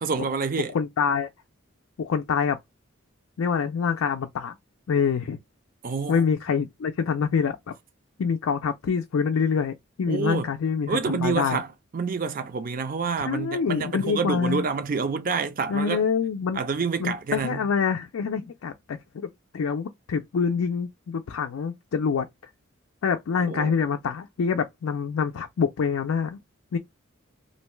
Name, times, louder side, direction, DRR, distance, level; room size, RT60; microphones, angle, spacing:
voice 1, 0.0-0.8 5.8-6.3 10.1-10.5 10.9-11.7 11.9-16.0 16.5-17.7 23.5-23.7, right 5 dB, 40° right, 0.5 m, -28 dB
voice 2, 0.7-1.3 2.0-2.6 3.4-4.6 4.9-5.4 6.1-7.7 8.2-11.6 13.3-14.6 15.7-16.6 17.0-19.3 19.5-22.3 23.0-26.4 26.7-26.8, left 6 dB, 80° left, 0.4 m, -26 dB
2.6 x 2.2 x 3.0 m
head